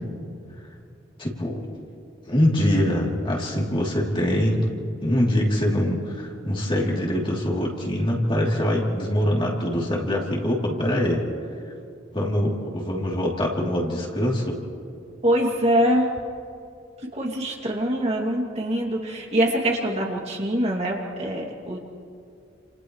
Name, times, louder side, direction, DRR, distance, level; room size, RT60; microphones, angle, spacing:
voice 1, 1.2-1.6 2.2-4.7 5.0-11.2 12.1-14.6, equal, 25° left, -3 dB, 3.3 m, -23 dB
voice 2, 15.2-16.1 17.1-21.8, equal, 35° right, -1 dB, 2.7 m, -24 dB
30.0 x 28.5 x 3.3 m, 2.5 s
head